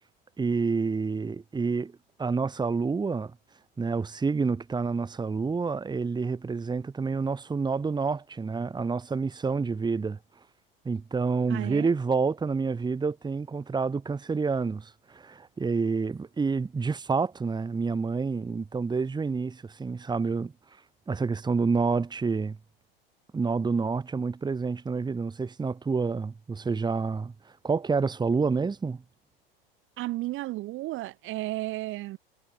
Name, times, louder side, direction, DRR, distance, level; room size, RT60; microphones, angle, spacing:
voice 1, 0.4-1.9 2.2-3.3 3.8-10.2 10.8-20.5 21.1-22.6 23.3-27.3 27.6-29.0, right 4 dB, 15° right, 2.3 m, -28 dB
voice 2, 11.5-11.9 30.0-32.2, right 18 dB, 45° right, 2.2 m, -33 dB
hypercardioid pair, 90°, 29 cm